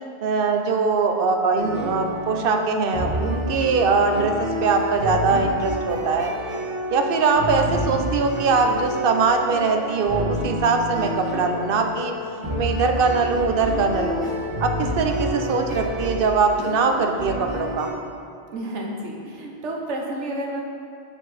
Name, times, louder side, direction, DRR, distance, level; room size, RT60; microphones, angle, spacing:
voice 1, 0.2-6.3 6.9-12.1 12.6-14.3 14.6-17.9, right 4 dB, 60° right, 4 dB, 0.8 m, -22 dB
sound 1, 1.6-17.9, equal, 30° right, 1.6 m, -29 dB
voice 2, 18.5-20.6, right 1 dB, 85° right, 0 dB, 1.3 m, -30 dB
8.0 x 4.6 x 4.1 m, 2.6 s
omnidirectional pair, 1.2 m